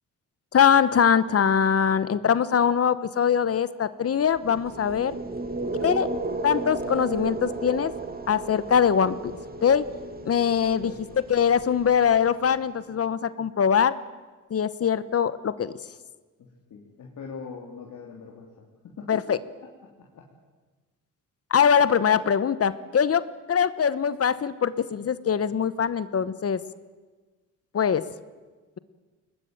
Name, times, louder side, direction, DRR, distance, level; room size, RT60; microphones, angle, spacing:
voice 1, 0.5-5.1 5.8-6.1 6.4-7.9 8.3-9.2 9.6-9.9 10.2-10.9 11.3-14.0 14.5-15.7 19.1-19.4 21.5-26.6 27.7-28.0, left 7 dB, 45° left, 15 dB, 1.0 m, -22 dB
sound 1, 4.4-12.5, right 3 dB, 30° right, 2.4 m, -34 dB
voice 2, 10.7-11.2 16.4-18.5 18.8-19.2 20.1-20.2, left 5 dB, 65° left, -1 dB, 3.3 m, -42 dB
22.0 x 20.0 x 9.1 m, 1.3 s
cardioid pair, 90°, 32 cm